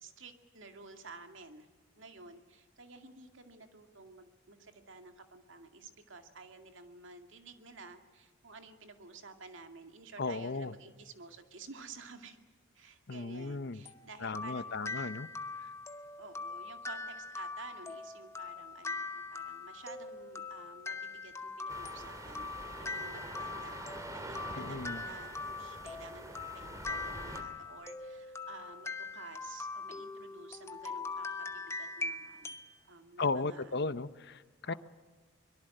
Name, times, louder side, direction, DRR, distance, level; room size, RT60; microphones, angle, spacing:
voice 1, 0.0-1.7 2.0-12.4 12.7-14.7 16.2-23.8 24.1-33.8 34.6-34.8, right 3 dB, 60° right, 6 dB, 2.3 m, -52 dB
voice 2, 10.2-10.7 13.1-13.8 14.2-15.3 24.5-25.0 33.2-34.4 34.7-34.8, left 3 dB, 50° left, 14 dB, 0.8 m, -35 dB
sound 1, 13.9-32.7, left 3 dB, 15° left, 0.9 m, -42 dB
sound 2, 21.7-27.4, right 1 dB, 15° right, 2.4 m, -45 dB
24.0 x 22.5 x 7.8 m, 1.3 s
head